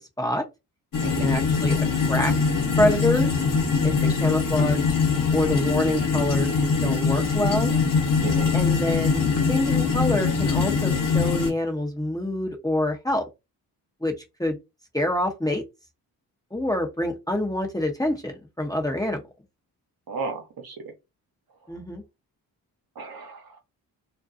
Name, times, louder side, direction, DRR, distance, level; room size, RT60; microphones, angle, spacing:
sound 1, 0.9-11.5, left 5 dB, 45° left, 1.0 m, -23 dB
voice 1, 1.0-2.3 2.8-3.3 3.8-3.9 4.2-4.9 5.3-7.8 8.5-13.3 14.0-14.1 14.4-14.6 14.9-15.6 16.5-19.2 21.7-22.0, left 1 dB, 10° left, 0.7 m, -26 dB
voice 2, 8.2-8.5 20.1-20.8 23.0-23.6, right 4 dB, 55° right, 0.9 m, -34 dB
2.5 x 2.2 x 2.5 m
supercardioid pair, 50°, 43 cm